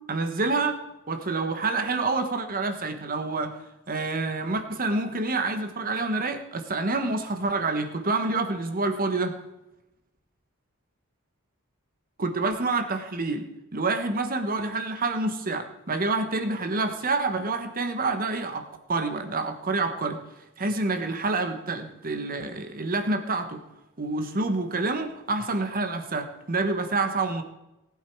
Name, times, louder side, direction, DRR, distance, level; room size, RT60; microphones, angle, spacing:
voice 1, 0.1-0.8 1.1-3.6 3.9-9.3 12.2-13.4 13.7-20.2 20.6-23.6 24.0-27.4, right 3 dB, 40° right, 7 dB, 1.2 m, -27 dB
19.0 x 8.5 x 4.6 m, 0.94 s
head